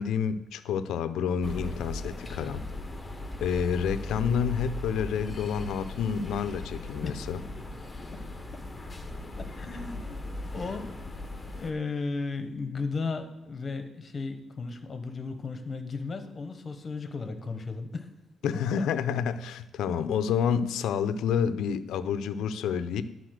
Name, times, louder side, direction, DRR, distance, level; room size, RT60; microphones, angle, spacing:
voice 1, 0.0-2.6 3.4-7.4 18.4-23.0, left 7 dB, 80° left, 12 dB, 0.6 m, -29 dB
sound 1, 1.4-11.7, left 2 dB, 10° left, 1.2 m, -38 dB
voice 2, 9.6-11.0 11.6-18.1 18.7-18.8, left 4 dB, 30° left, 7 dB, 1.1 m, -35 dB
11.0 x 4.1 x 6.4 m, 1.0 s
cardioid pair, 125°, 0 cm